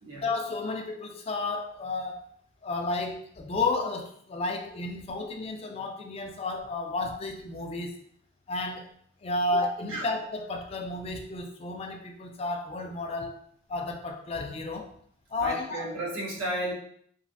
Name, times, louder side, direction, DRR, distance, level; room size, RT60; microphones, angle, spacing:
voice 1, 0.1-2.2 2.6-7.9 8.5-8.9 9.2-13.4 13.7-14.9 15.3-15.9, left 2 dB, 30° left, 3 dB, 0.3 m, -32 dB
voice 2, 15.4-16.7, right 1 dB, 85° right, -3 dB, 0.9 m, -33 dB
3.0 x 2.5 x 2.7 m, 0.63 s
head